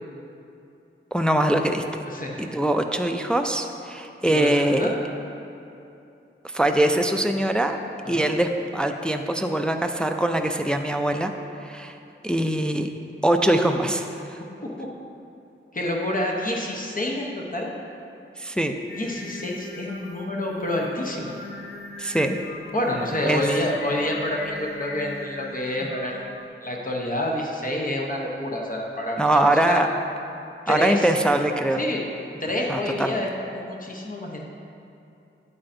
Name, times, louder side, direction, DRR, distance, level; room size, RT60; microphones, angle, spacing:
voice 1, 1.1-1.8 2.4-4.9 6.4-7.8 8.1-11.3 11.6-12.0 12.2-12.9 13.2-14.4 18.4-18.7 22.0-22.4 23.3-23.4 29.2-29.9 30.7-31.8 32.7-33.2, right 1 dB, 5° left, 5 dB, 0.3 m, -22 dB
voice 2, 2.0-2.4 4.3-4.9 8.0-8.3 14.8-14.9 15.7-17.7 18.9-21.3 22.7-26.2 26.6-29.8 30.7-31.1 31.8-32.1 32.4-34.4, left 1 dB, 40° left, -1 dB, 0.8 m, -28 dB
Singing, 18.9-26.5, left 2 dB, 80° left, 0.8 m, -39 dB
8.5 x 8.4 x 2.6 m, 2.7 s
wide cardioid pair, 105°, 21 cm